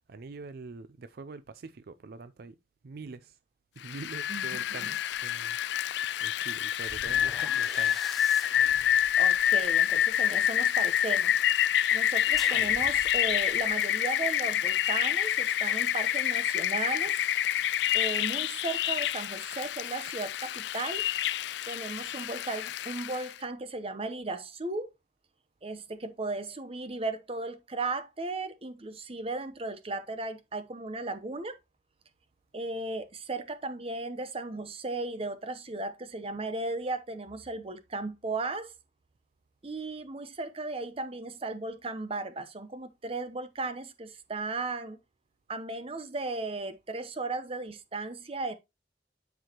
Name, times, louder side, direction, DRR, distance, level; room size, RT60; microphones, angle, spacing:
voice 1, 0.1-2.6 2.8-3.4 3.7-5.9 6.2-8.1, right 4 dB, 60° right, 0.4 m, -44 dB
Rain, 3.9-23.3, left 10 dB, 70° left, 0.3 m, -27 dB
sound 1, 5.1-5.3 6.8-10.9 12.3-13.7, equal, ahead, 0.6 m, -47 dB
voice 2, 9.2-11.4 11.9-17.2 17.9-21.0 21.7-24.9 25.6-31.6 32.5-38.7 39.6-45.0 45.5-48.5, right 3 dB, 35° right, 0.9 m, -36 dB
12.0 x 4.8 x 3.0 m
head